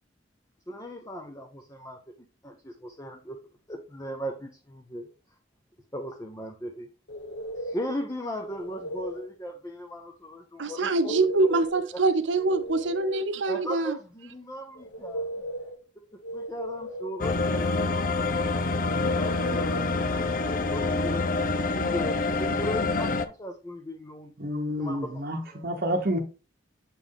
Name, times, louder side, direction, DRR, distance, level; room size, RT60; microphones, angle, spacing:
voice 1, 0.7-2.0 2.4-3.4 3.7-5.1 5.9-6.9 7.6-11.2 11.4-11.5 11.9-12.0 13.5-15.3 16.3-18.0 19.0-24.3 24.8-25.6, equal, 15° left, 0.9 m, -37 dB
sound 1, 7.1-7.9 8.4-9.3 10.9-11.9 12.2-13.3 14.8-15.8 16.2-17.2 18.8-19.9, equal, 70° left, 1.0 m, -36 dB
voice 2, 10.6-14.0, right 3 dB, 90° right, 0.8 m, -25 dB
sound 2, 17.2-23.3, left 3 dB, 50° left, 0.6 m, -26 dB
voice 3, 24.4-26.2, equal, 50° right, 1.0 m, -29 dB
7.5 x 4.3 x 3.6 m
head